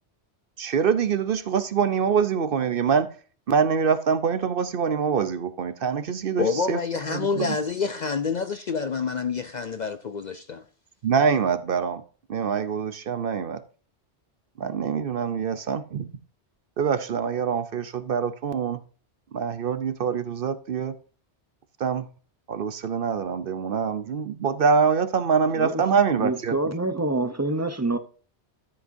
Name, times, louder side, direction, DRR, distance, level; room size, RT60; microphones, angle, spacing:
voice 1, 0.6-3.1 3.5-6.8 7.1-7.6 11.0-12.0 12.3-13.6 14.6-16.1 16.8-18.8 19.3-21.0 21.8-22.1 22.5-26.6, right 6 dB, 55° right, 0.8 m, -24 dB
voice 2, 6.4-10.6, left 5 dB, 55° left, 0.5 m, -27 dB
voice 3, 26.2-28.0, right 2 dB, 20° right, 0.6 m, -26 dB
13.0 x 7.7 x 2.7 m
omnidirectional pair, 1.2 m